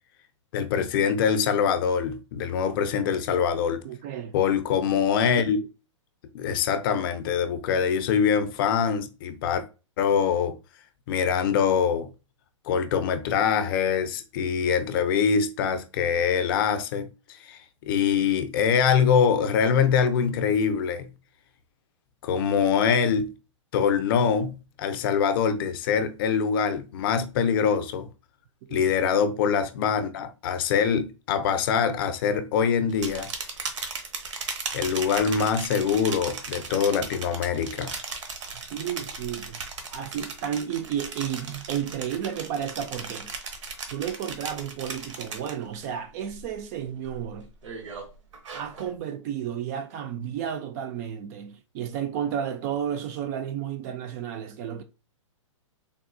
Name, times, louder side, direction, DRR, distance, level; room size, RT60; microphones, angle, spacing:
voice 1, 0.5-3.8 4.3-5.6 6.3-9.6 10.0-10.6 11.1-12.1 12.7-21.1 22.2-23.3 23.7-28.1 28.7-33.3 34.7-37.9, left 7 dB, 45° left, 0.5 m, -24 dB
voice 2, 3.8-4.3 28.6-28.9 38.7-39.6 39.9-43.4 43.9-47.5 48.5-54.8, right 9 dB, 35° right, 0.3 m, -32 dB
sound 1, 32.9-45.8 46.2-46.6 47.0-48.9, right 4 dB, 70° right, 0.8 m, -37 dB
3.6 x 2.2 x 2.5 m
hypercardioid pair, 130°, 16 cm